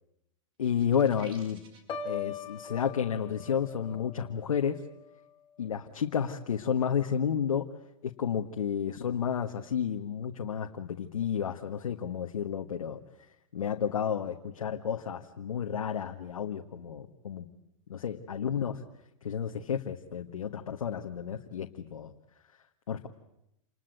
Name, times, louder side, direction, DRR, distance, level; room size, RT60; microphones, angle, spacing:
voice 1, 0.6-1.6 2.0-4.8 5.6-7.7 8.0-13.0 13.5-17.5 17.9-18.8 19.2-22.1 22.9-23.1, left 8 dB, 90° left, 4 dB, 1.6 m, -31 dB
sound 1, 0.6-2.0, right 3 dB, 30° right, 4.4 m, -53 dB
Piano, 1.9-5.8 6.2-6.6, left 6 dB, 30° left, 2.6 m, -42 dB
28.0 x 20.5 x 9.2 m, 0.82 s
hypercardioid pair, 135°, 17 cm